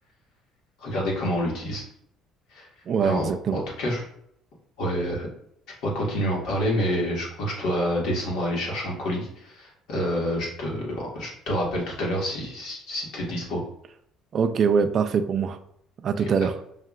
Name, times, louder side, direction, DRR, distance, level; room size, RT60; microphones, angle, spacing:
voice 1, 0.8-1.8 2.5-2.7 3.0-4.0 4.8-5.3 5.8-13.6 16.2-16.3, equal, 75° left, -3 dB, 1.6 m, -28 dB
voice 2, 2.9-3.6 14.3-15.6 16.0-16.5, right 6 dB, 45° right, 9 dB, 0.3 m, -23 dB
5.6 x 2.8 x 2.4 m, 0.72 s
cardioid pair, 120°, 0 cm